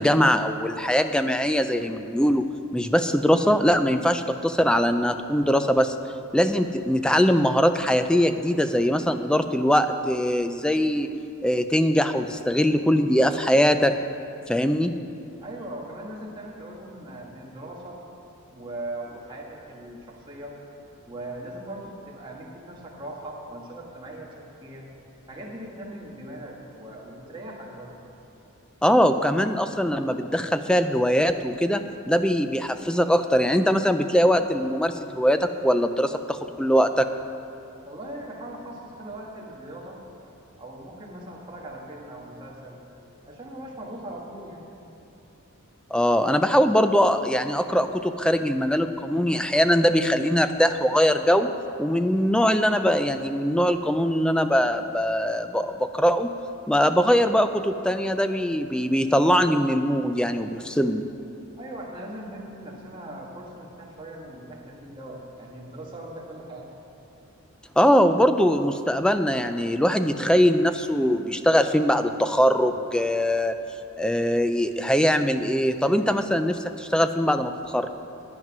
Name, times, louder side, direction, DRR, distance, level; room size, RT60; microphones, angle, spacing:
voice 1, 0.0-2.5 2.7-5.9 6.3-11.1 11.4-13.9 14.5-14.9 28.8-37.1 45.9-51.5 51.8-56.3 56.7-61.1 67.8-73.6 74.0-77.9, equal, 5° left, 9 dB, 0.3 m, -22 dB
voice 2, 15.4-18.0 18.5-20.6 21.1-24.9 25.3-27.9 37.8-40.0 40.6-42.8 43.3-44.7 61.6-66.7, right 1 dB, 20° right, -3 dB, 1.6 m, -39 dB
11.0 x 9.0 x 5.9 m, 2.8 s
head